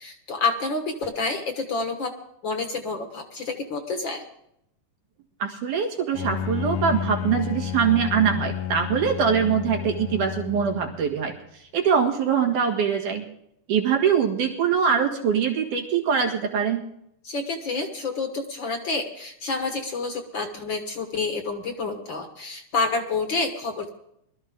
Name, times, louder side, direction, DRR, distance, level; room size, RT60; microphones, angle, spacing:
voice 1, 0.0-2.1 2.4-4.2 17.2-23.9, left 3 dB, 50° left, 6 dB, 1.6 m, -28 dB
voice 2, 5.4-11.4 11.7-13.2 13.7-16.8, right 7 dB, 80° right, 2 dB, 3.5 m, -23 dB
Bowed string instrument, 6.1-11.1, left 9 dB, 70° left, 1.4 m, -31 dB
21.0 x 13.0 x 3.7 m, 0.75 s
omnidirectional pair, 3.6 m